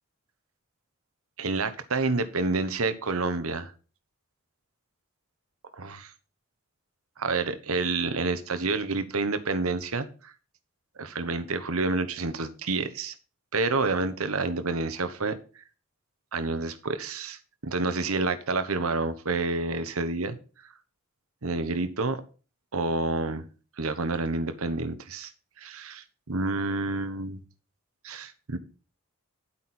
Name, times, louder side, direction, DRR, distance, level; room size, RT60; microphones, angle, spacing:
voice 1, 1.4-3.7 5.8-6.1 7.2-10.3 11.0-13.1 13.5-15.6 16.3-20.4 21.4-22.2 22.7-23.4 23.8-25.3 25.6-27.4 28.0-28.6, right 3 dB, 80° right, 10 dB, 1.1 m, -29 dB
10.5 x 8.5 x 4.3 m, 0.37 s
head